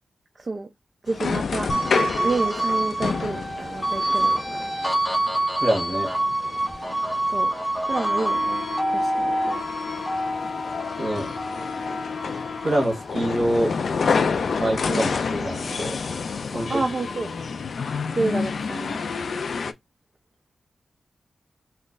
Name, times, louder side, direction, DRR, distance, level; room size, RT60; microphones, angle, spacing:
voice 1, 0.4-0.7 1.0-1.7 2.2-4.6 7.3-7.5 7.9-8.7 8.9-9.7 14.9-15.1 16.7-17.3 18.2-19.0, right 3 dB, 30° right, 0.4 m, -29 dB
sound 1, 1.1-19.7, left 5 dB, 60° left, 0.3 m, -29 dB
sound 2, 1.7-14.3 14.7-16.4, right 1 dB, 10° left, 0.8 m, -27 dB
voice 2, 5.6-6.1 11.0-11.3 12.6-13.7 14.6-16.0 16.5-16.8, right 1 dB, 50° right, 1.4 m, -25 dB
3.1 x 2.2 x 3.8 m
wide cardioid pair, 170°, 0 cm